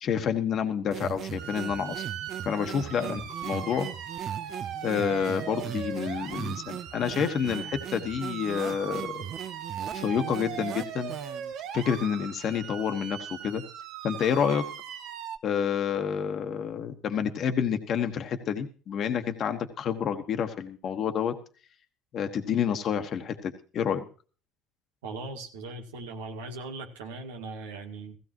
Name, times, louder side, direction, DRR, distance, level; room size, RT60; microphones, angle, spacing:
voice 1, 0.0-2.0 2.4-3.9 4.8-9.3 9.9-11.1 11.7-13.6 14.0-14.6 15.4-21.3 22.1-24.0, left 7 dB, 55° left, 6 dB, 1.5 m, -29 dB
sound 1, 0.9-11.5, right 9 dB, 50° right, 0.7 m, -39 dB
sound 2, 1.4-15.4, right 9 dB, 70° right, 1.3 m, -39 dB
voice 2, 25.0-28.2, right 3 dB, 85° right, 3 dB, 1.9 m, -39 dB
16.5 x 15.5 x 3.0 m, 0.38 s
hypercardioid pair, 70°, 0 cm